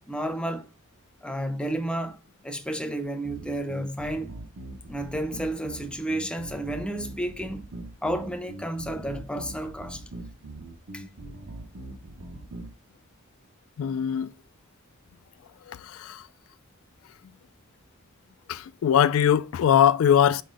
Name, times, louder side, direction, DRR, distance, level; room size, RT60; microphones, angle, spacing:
voice 1, 0.1-0.7 1.2-2.2 2.4-4.4 4.9-7.7 8.0-10.0 10.9-11.0, right 1 dB, 5° left, 0.6 m, -31 dB
funk bass edit, 3.2-12.7, right 1 dB, 60° right, 1.0 m, -41 dB
voice 2, 13.8-14.3 15.7-16.3 18.5-20.4, left 9 dB, 70° left, 0.3 m, -21 dB
5.5 x 4.9 x 3.8 m
head